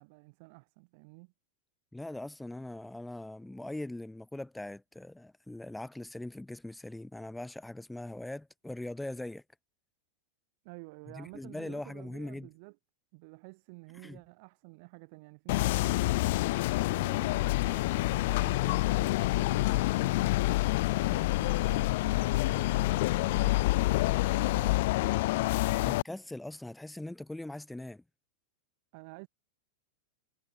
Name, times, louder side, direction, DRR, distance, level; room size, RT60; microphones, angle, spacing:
voice 1, 0.0-1.3 10.6-12.8 13.1-16.4 16.9-20.4 21.0-26.0 28.9-29.3, right 31 dB, 45° right, 6.1 m, -51 dB
voice 2, 1.9-9.4 11.1-12.5 14.0-14.2 25.8-28.0, left 1 dB, 5° left, 2.8 m, -41 dB
sound 1, 15.5-26.0, left 19 dB, 50° left, 1.2 m, -27 dB
figure-of-eight pair, 90°, 0 cm